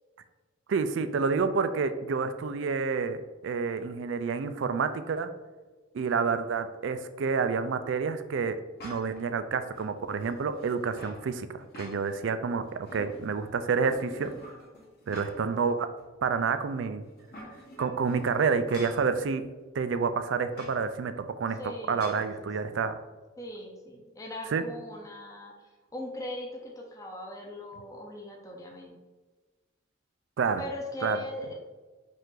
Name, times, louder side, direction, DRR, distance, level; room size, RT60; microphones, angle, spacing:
voice 1, 0.7-3.2 3.4-5.3 5.9-8.6 8.8-14.5 15.1-15.9 16.2-17.1 17.8-19.4 19.7-21.6 21.9-23.0 24.5-24.6 30.4-30.6 31.0-31.2, right 5 dB, 70° right, 10 dB, 0.4 m, -29 dB
sound 1, 8.8-9.2 9.7-11.2 11.6-12.3 12.7-13.4 13.8-15.6 16.0-16.1 17.1-19.1 20.5-20.8 22.0-22.3, equal, 55° left, 1.0 m, -46 dB
voice 2, 21.5-22.9 23.4-29.0 30.6-31.7, left 1 dB, 15° left, 0 dB, 0.5 m, -40 dB
5.2 x 2.5 x 3.7 m, 1.3 s
head